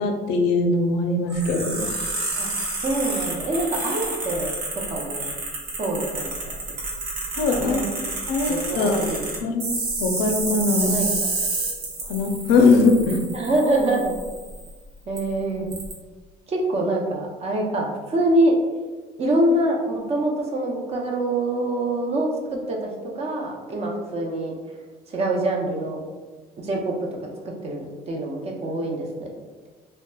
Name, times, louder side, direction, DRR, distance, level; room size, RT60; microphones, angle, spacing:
voice 1, 0.0-2.0 7.4-7.8 8.3-9.0 9.4-9.7 10.0-11.0 12.1-13.2, left 3 dB, 90° left, 4 dB, 0.4 m, -21 dB
sound 1, 1.3-14.7 15.2-15.3 15.7-15.9, right 2 dB, 75° right, 0.8 m, -30 dB
voice 2, 2.8-5.2 5.8-6.4 7.6-7.9 8.5-9.3 10.8-11.1 13.3-14.1 15.1-15.7 16.5-18.5 19.2-24.5 25.1-26.0 26.6-26.9 27.6-29.3, right 1 dB, 40° right, 0 dB, 0.5 m, -25 dB
2.9 x 2.1 x 2.2 m, 1.3 s
cardioid pair, 110°, 17 cm